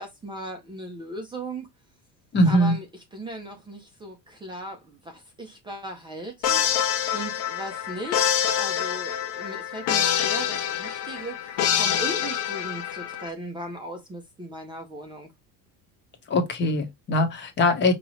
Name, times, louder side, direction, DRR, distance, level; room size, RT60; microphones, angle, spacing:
voice 1, 0.0-1.7 2.5-2.8 3.1-15.3, right 1 dB, 15° right, 0.6 m, -38 dB
voice 2, 2.3-2.8 16.3-17.9, left 1 dB, 30° left, 1.0 m, -21 dB
sound 1, 6.4-13.3, left 10 dB, 80° left, 1.2 m, -26 dB
5.2 x 3.0 x 3.0 m
cardioid pair, 170°, 37 cm